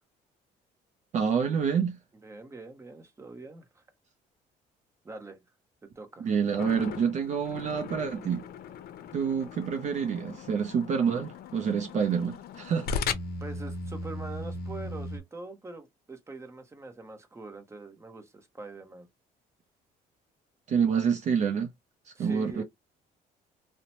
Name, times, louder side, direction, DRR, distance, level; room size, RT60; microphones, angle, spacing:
voice 1, 1.1-2.0 6.2-8.4 9.1-12.9 20.7-21.7 22.1-22.6, right 6 dB, 45° right, 0.5 m, -27 dB
voice 2, 2.2-3.8 5.0-5.4 6.0-6.3 13.4-19.1 22.2-22.6, right 3 dB, 15° right, 0.8 m, -43 dB
sound 1, 6.6-15.2, left 4 dB, 65° left, 0.5 m, -38 dB
2.9 x 2.1 x 2.7 m
cardioid pair, 110°, 17 cm